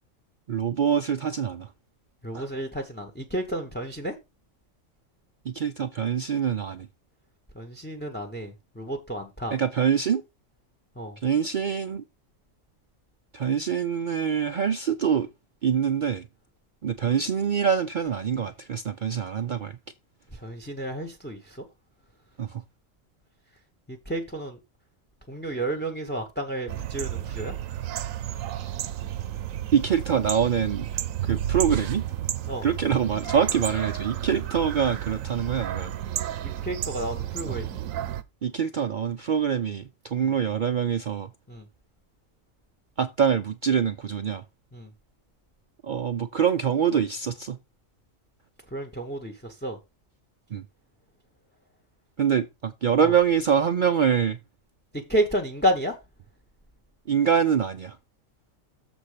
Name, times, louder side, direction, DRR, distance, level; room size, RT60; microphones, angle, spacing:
voice 1, 0.5-1.7 2.3-2.5 5.4-6.9 9.5-10.2 11.2-12.0 13.3-15.3 15.6-16.3 16.8-19.8 22.4-22.6 29.7-30.9 31.2-32.0 32.6-36.0 37.5-37.6 38.4-41.3 43.0-44.4 45.8-47.6 50.5-50.6 52.2-54.4 57.1-58.0, right 7 dB, 55° right, 0.5 m, -25 dB
voice 2, 2.2-4.1 7.5-9.6 11.0-11.2 20.3-21.6 23.9-24.6 25.3-27.5 32.5-32.7 36.4-37.8 40.2-40.3 41.5-41.7 44.7-44.9 48.7-49.8 53.0-53.1 54.9-56.0, right 1 dB, 10° left, 1.0 m, -31 dB
sound 1, 26.7-38.2, right 11 dB, 80° right, 1.1 m, -32 dB
7.2 x 4.1 x 6.6 m
omnidirectional pair, 1.4 m